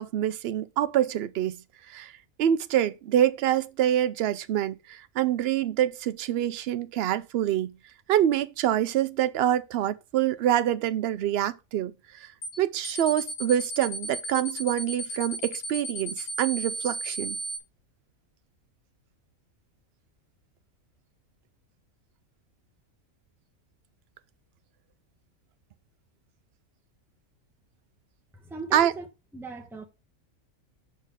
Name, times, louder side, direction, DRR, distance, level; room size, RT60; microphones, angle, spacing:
voice 1, 0.0-1.6 1.9-2.1 2.4-7.7 8.1-12.3 12.6-17.4 28.7-28.9, right 11 dB, 65° right, 0.6 m, -26 dB
sound 1, 12.4-12.6 12.8-17.6, right 2 dB, 85° left, 1.6 m, -34 dB
voice 2, 28.3-29.1 29.3-29.8, right 4 dB, ahead, 0.9 m, -39 dB
6.1 x 4.4 x 4.7 m
omnidirectional pair, 1.4 m